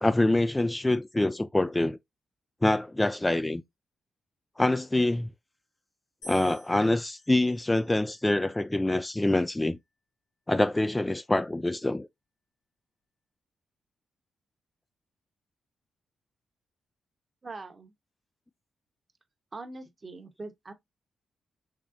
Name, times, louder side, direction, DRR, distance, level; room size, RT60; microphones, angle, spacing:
voice 1, 0.0-2.0 2.6-3.6 4.6-5.3 6.2-9.8 10.5-12.1, left 1 dB, 15° left, 0.3 m, -25 dB
sound 1, 6.2-8.4 9.2-9.8, left 1 dB, 85° left, 1.8 m, -51 dB
voice 2, 17.4-17.9 19.5-20.7, right 3 dB, 35° right, 0.9 m, -42 dB
3.7 x 3.0 x 2.7 m
supercardioid pair, 50°, 0 cm